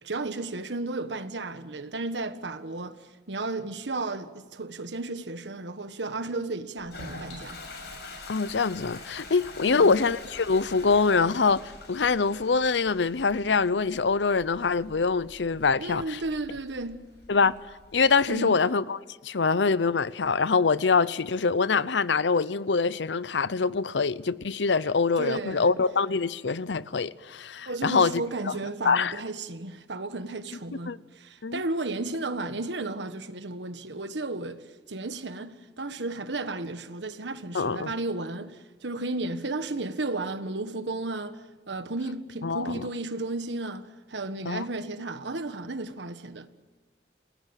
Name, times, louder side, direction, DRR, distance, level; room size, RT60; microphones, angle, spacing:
voice 1, 0.0-7.6 9.6-9.9 15.8-17.1 18.3-18.6 25.2-25.8 27.6-46.5, right 2 dB, 90° right, 1.5 m, -34 dB
Toilet flush, 6.8-18.2, left 2 dB, 70° left, 6.3 m, -45 dB
voice 2, 8.3-16.2 17.3-17.6 17.9-28.6 28.8-29.1 30.9-31.0 31.4-31.6 37.5-37.9 42.4-42.8 44.5-44.6, left 4 dB, 90° left, 0.7 m, -24 dB
28.5 x 19.0 x 9.0 m
head